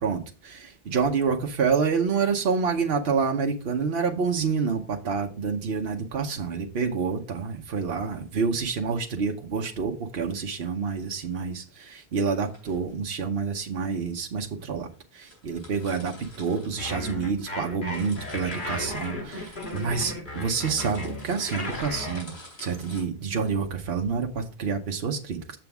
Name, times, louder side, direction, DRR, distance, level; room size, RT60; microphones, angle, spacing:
voice 1, 0.0-14.9 15.1-22.3 22.6-25.6, right 5 dB, 75° right, 3 dB, 1.1 m, -28 dB
sound 1, 10.3-10.4 12.2-12.9 13.8-13.9 14.6-14.7 14.9-15.0 15.2-17.5 17.8-23.0, left 1 dB, 85° left, 4.0 m, -49 dB
sound 2, 16.8-22.2, left 2 dB, 55° left, 1.8 m, -35 dB
7.4 x 7.0 x 3.5 m, 0.37 s
omnidirectional pair, 1.0 m